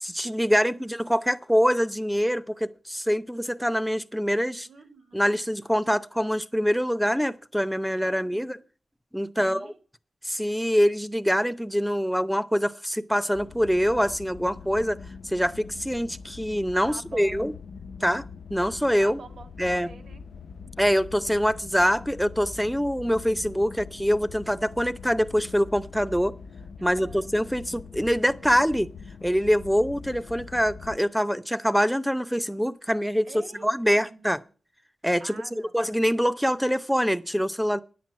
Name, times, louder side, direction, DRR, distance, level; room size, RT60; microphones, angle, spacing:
voice 1, 0.0-4.7 5.1-8.6 9.1-9.7 10.2-15.0 15.2-17.5 18.0-18.2 18.5-19.2 19.6-19.9 20.8-26.3 26.8-28.9 29.2-33.3 33.6-34.4 35.0-35.3 35.7-37.8, equal, ahead, 0.6 m, -24 dB
voice 2, 4.7-5.3 9.4-9.8 16.9-17.5 19.0-20.3 26.8-27.3 33.2-34.5 35.2-35.7, right 4 dB, 75° right, 1.7 m, -47 dB
sound 1, 13.3-31.0, left 5 dB, 75° left, 0.5 m, -43 dB
10.0 x 7.7 x 7.3 m
wide cardioid pair, 90°, 0 cm